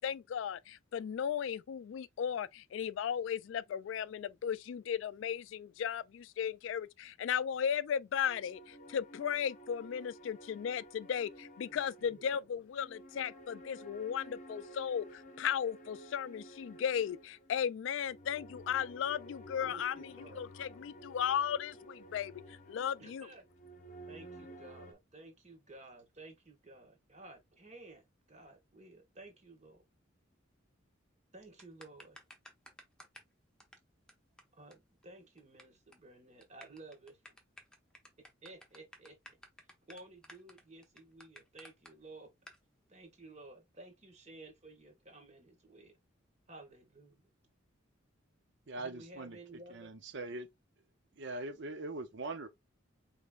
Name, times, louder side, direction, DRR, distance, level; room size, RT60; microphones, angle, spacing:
voice 1, 0.0-23.3, left 8 dB, 70° left, 0.3 m, -36 dB
sound 1, 8.2-24.9, right 1 dB, 40° left, 0.8 m, -53 dB
voice 2, 11.7-12.4 19.6-20.5 23.0-23.5 24.1-29.8 31.3-32.2 34.6-37.2 38.4-39.2 39.9-42.3 42.9-46.0 46.5-47.3 48.8-49.9, right 2 dB, 35° right, 1.8 m, -54 dB
sound 2, 31.6-33.3 33.6-33.7 34.1-34.2 34.4-34.5 34.7-34.8 35.0-35.6 35.9-36.1 36.4-41.9 42.5-42.6, equal, 5° left, 1.0 m, -54 dB
voice 3, 48.7-49.4 49.7-50.5 51.2-52.5, right 2 dB, 65° right, 0.7 m, -41 dB
5.0 x 3.2 x 2.4 m
head